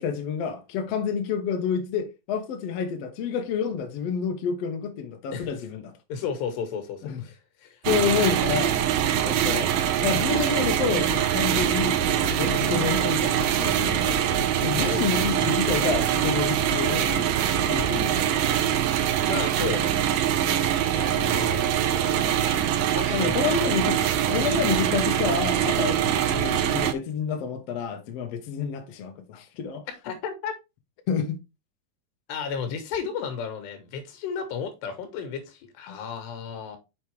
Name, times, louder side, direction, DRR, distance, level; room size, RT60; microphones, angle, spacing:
voice 1, 0.0-5.9 7.0-7.2 7.8-8.8 9.2-9.7 10.0-14.3 14.6-17.3 17.7-18.3 20.4-20.6 23.1-24.0 24.3-29.8 31.1-31.4, left 6 dB, 70° left, 1.5 m, -29 dB
voice 2, 6.1-7.8 14.7-15.0 15.4-15.6 19.3-19.9 20.9-22.6 22.9-23.5 24.3-24.5 30.0-30.5 32.3-36.8, left 6 dB, 90° left, 3.6 m, -34 dB
sound 1, 7.8-26.9, right 10 dB, 80° right, 2.2 m, -24 dB
sound 2, 10.6-10.8 11.1-11.2 11.5-11.7 12.0-12.6 12.9-13.1 13.4-13.5 13.8-14.5 14.8-14.9 15.2-15.4 15.7-16.3 16.6-16.8 17.1-17.2 17.5-17.9, left 3 dB, 20° left, 1.0 m, -35 dB
6.7 x 5.8 x 3.2 m
omnidirectional pair, 4.7 m